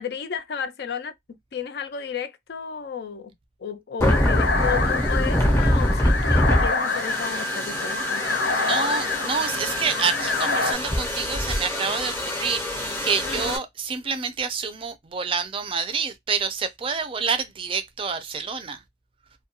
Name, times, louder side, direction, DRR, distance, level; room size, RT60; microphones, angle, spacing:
voice 1, 0.0-3.3 3.6-8.2 13.2-13.5, left 7 dB, 60° left, 0.4 m, -33 dB
sound 1, 4.0-10.7, left 3 dB, 85° left, 0.8 m, -27 dB
sound 2, 4.0-13.6, equal, 15° left, 0.6 m, -25 dB
voice 2, 8.6-18.8, right 5 dB, 30° right, 0.4 m, -28 dB
2.3 x 2.2 x 2.8 m
head